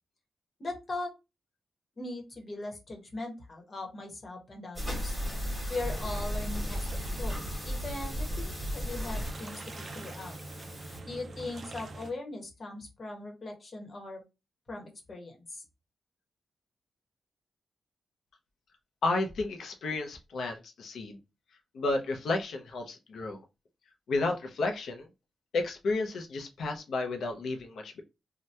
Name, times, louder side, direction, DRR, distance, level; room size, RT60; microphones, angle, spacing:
voice 1, 0.6-1.1 2.0-5.2 5.7-10.4 11.1-14.2 14.7-15.6, left 2 dB, 35° left, 1 dB, 1.0 m, -40 dB
sound 1, 4.7-11.0, equal, 5° left, 1.4 m, -35 dB
sound 2, 5.8-12.1, right 2 dB, 35° right, 0.5 m, -44 dB
voice 2, 19.0-21.2 21.7-23.4 24.1-25.1 25.5-28.0, left 3 dB, 70° left, 3 dB, 0.6 m, -32 dB
2.8 x 2.2 x 3.2 m, 0.26 s
wide cardioid pair, 150°, 0 cm